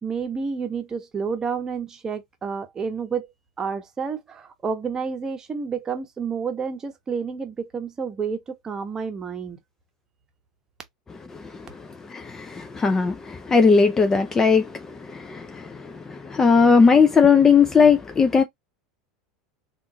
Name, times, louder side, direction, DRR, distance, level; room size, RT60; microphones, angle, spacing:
voice 1, 0.0-3.3 3.6-9.6, right 5 dB, 25° right, 1.0 m, -30 dB
voice 2, 11.3-11.7 12.1-18.4, left 5 dB, 20° left, 0.5 m, -18 dB
3.6 x 2.5 x 2.7 m
figure-of-eight pair, 75°, 3 cm